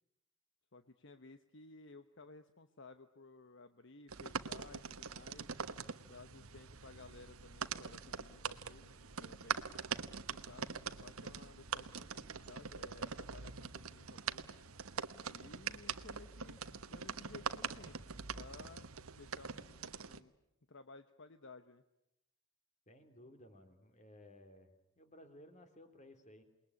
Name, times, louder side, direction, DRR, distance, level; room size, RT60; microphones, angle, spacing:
voice 1, 0.7-5.5 6.1-9.8 10.1-14.6 15.3-16.6 16.9-18.9 19.2-20.3 20.7-21.8, left 3 dB, 55° left, 9 dB, 1.0 m, -57 dB
sound 1, 4.1-20.2, right 6 dB, 80° right, 1.2 m, -43 dB
voice 2, 22.9-26.4, left 1 dB, 35° left, 7 dB, 3.3 m, -58 dB
28.0 x 21.0 x 9.8 m, 0.85 s
head